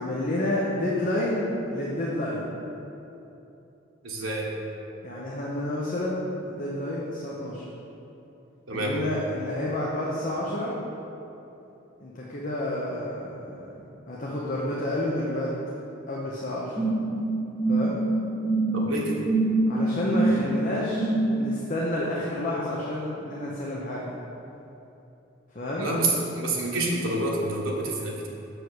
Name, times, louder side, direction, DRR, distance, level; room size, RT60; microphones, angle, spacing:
voice 1, 0.0-2.5 5.0-7.6 8.7-10.8 12.0-13.7 14.1-15.5 16.1-16.8 17.7-18.0 19.7-24.2 25.5-25.9, left 1 dB, 40° left, -5 dB, 0.8 m, -29 dB
voice 2, 4.0-4.5 8.7-8.9 18.7-19.2 25.8-28.3, right 2 dB, 85° right, -3 dB, 1.3 m, -28 dB
sound 1, 16.7-21.5, right 2 dB, ahead, 1.3 m, -25 dB
6.8 x 4.9 x 6.2 m, 2.9 s
head